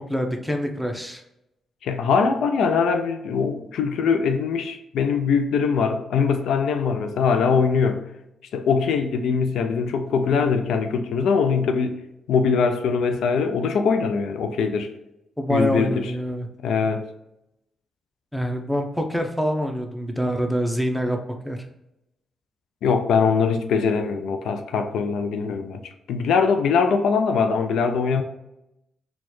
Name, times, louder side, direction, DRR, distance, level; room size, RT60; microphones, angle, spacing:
voice 1, 0.1-1.2 15.4-16.5 18.3-21.2 21.4-21.6, equal, ahead, 0.7 m, -25 dB
voice 2, 1.8-8.0 8.5-12.0 12.3-14.9 15.5-16.1 16.6-17.0 22.8-25.8 26.1-28.2, left 5 dB, 75° left, 0.3 m, -22 dB
4.1 x 2.3 x 3.0 m
supercardioid pair, 45°, 0 cm